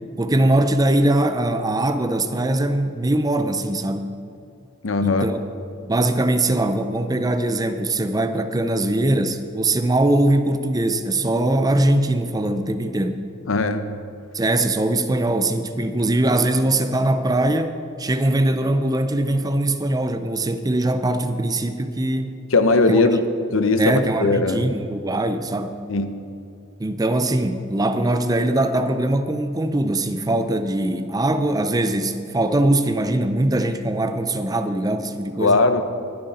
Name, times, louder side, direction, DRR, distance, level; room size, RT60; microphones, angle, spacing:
voice 1, 0.2-4.1 5.0-5.4 5.9-13.3 14.3-22.3 22.9-23.0 23.8-25.8 26.8-35.6, right 1 dB, 20° right, 9 dB, 0.5 m, -21 dB
voice 2, 4.8-5.3 13.5-13.9 22.5-23.2 23.5-24.6 25.9-26.1 35.4-35.8, left 3 dB, 75° left, 9 dB, 0.8 m, -19 dB
19.5 x 7.6 x 4.3 m, 2.6 s
head